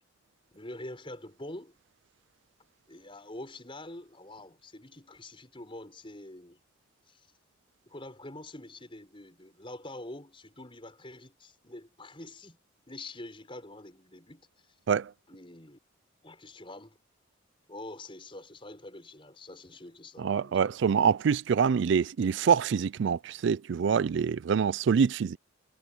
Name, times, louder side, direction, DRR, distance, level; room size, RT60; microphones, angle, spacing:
voice 1, 0.5-1.8 2.9-6.6 7.1-7.3 7.9-12.6 12.9-14.5 15.3-15.8 16.2-17.0 17.7-20.8 25.0-25.1, left 1 dB, 25° left, 5.5 m, -45 dB
voice 2, 20.2-25.4, right 6 dB, 55° right, 0.3 m, -25 dB
head